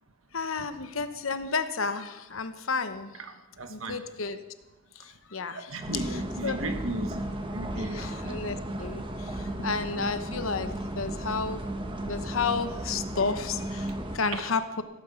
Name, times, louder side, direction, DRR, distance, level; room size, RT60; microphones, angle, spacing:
voice 1, 0.3-3.1 3.7-4.4 5.3-5.7 6.4-6.6 7.8-11.7 12.0-14.8, left 4 dB, 75° left, 10 dB, 1.0 m, -31 dB
voice 2, 3.1-4.0 5.0-5.2 5.5-8.0 10.9-11.0 14.3-14.4, right 1 dB, 85° right, 6 dB, 1.5 m, -36 dB
sound 1, 5.8-14.2, right 1 dB, 25° right, 1.5 m, -35 dB
16.0 x 9.0 x 7.1 m, 1.1 s
head